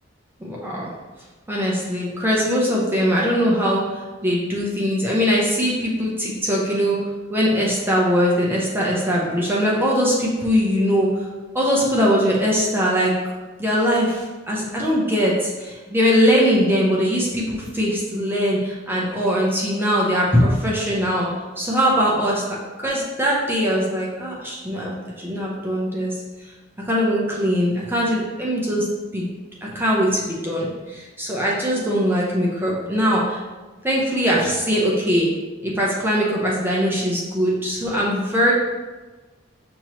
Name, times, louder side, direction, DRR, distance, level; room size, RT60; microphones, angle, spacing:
voice 1, 0.4-0.9 1.5-7.0 7.3-11.3 11.5-13.2 13.6-21.3 21.6-26.1 26.9-28.9 29.1-29.3 29.6-33.4 33.8-35.3 35.6-38.5, equal, 10° right, -5 dB, 0.7 m, -21 dB
6.2 x 2.9 x 2.9 m, 1.3 s
head